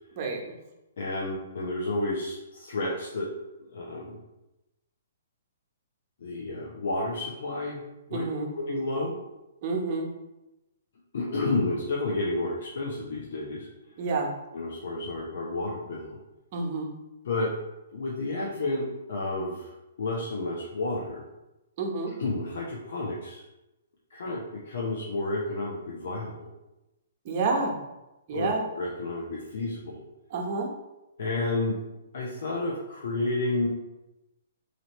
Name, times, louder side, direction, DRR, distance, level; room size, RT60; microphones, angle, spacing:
voice 1, 0.2-0.5 8.1-8.5 9.6-10.1 14.0-14.3 16.5-16.9 21.8-22.1 27.2-27.8 28.3-28.6 30.3-30.7, right 3 dB, 45° right, 0 dB, 0.9 m, -29 dB
voice 2, 1.0-3.3 3.6-4.2 6.2-7.8 8.1-8.2 8.5-9.2 11.1-13.7 14.5-16.2 17.2-17.5 17.9-21.2 22.2-23.4 24.1-26.5 28.3-30.0 31.2-31.8 32.1-33.7, left 2 dB, 65° left, -3 dB, 0.7 m, -31 dB
3.2 x 2.6 x 4.1 m, 0.97 s
hypercardioid pair, 130°, 0 cm